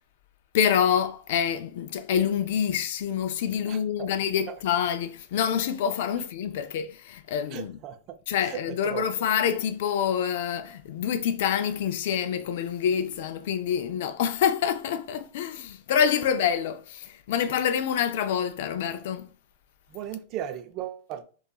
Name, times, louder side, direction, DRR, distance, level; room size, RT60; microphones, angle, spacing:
voice 1, 0.5-7.7 8.3-19.3, left 8 dB, 65° left, 0.3 m, -26 dB
voice 2, 3.7-4.1 4.5-4.6 6.1-6.2 7.5-9.3 19.9-21.2, right 11 dB, 45° right, 0.4 m, -37 dB
2.7 x 2.3 x 2.3 m
hypercardioid pair, 110°, 0 cm